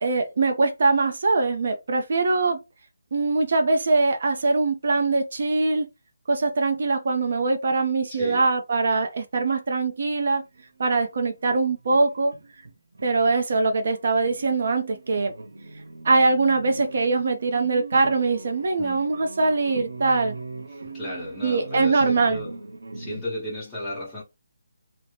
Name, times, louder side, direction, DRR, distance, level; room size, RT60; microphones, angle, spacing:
voice 1, 0.0-2.6 3.1-5.9 6.3-10.4 10.8-12.3 13.0-15.3 16.0-20.3 21.4-22.4, right 3 dB, 45° right, 0.5 m, -22 dB
voice 2, 8.1-8.5 18.8-19.1 20.7-22.5 22.9-24.2, left 1 dB, 5° left, 1.0 m, -34 dB
sound 1, 10.3-13.4 13.7-23.2, right 3 dB, 85° right, 0.7 m, -40 dB
2.7 x 2.0 x 3.2 m
hypercardioid pair, 175°, 0 cm